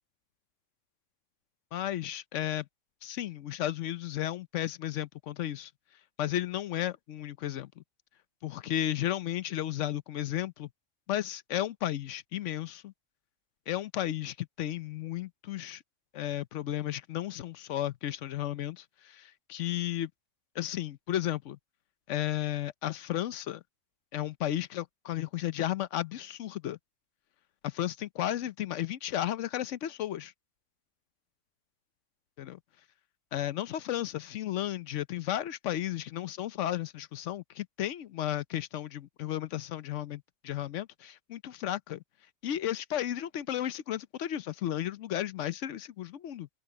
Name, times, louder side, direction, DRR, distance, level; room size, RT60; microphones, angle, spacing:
voice 1, 1.7-2.7 3.0-5.7 6.2-7.8 8.4-10.7 11.1-12.9 13.7-15.8 16.1-20.1 20.5-21.6 22.1-23.6 24.1-26.8 27.6-30.3 32.4-32.6 33.3-42.0 42.4-46.5, left 12 dB, 75° left, 1.0 m, -34 dB
open air
omnidirectional pair, 1.3 m